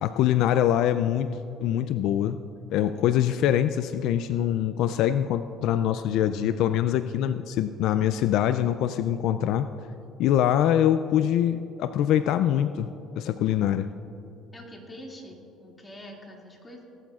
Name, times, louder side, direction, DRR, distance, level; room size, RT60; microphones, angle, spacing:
voice 1, 0.0-2.4 2.7-9.7 10.2-13.9, left 11 dB, 75° left, 11 dB, 0.3 m, -24 dB
voice 2, 14.5-16.8, equal, 20° left, -1 dB, 2.4 m, -45 dB
18.5 x 11.5 x 2.4 m, 2.8 s
cardioid pair, 105°, 0 cm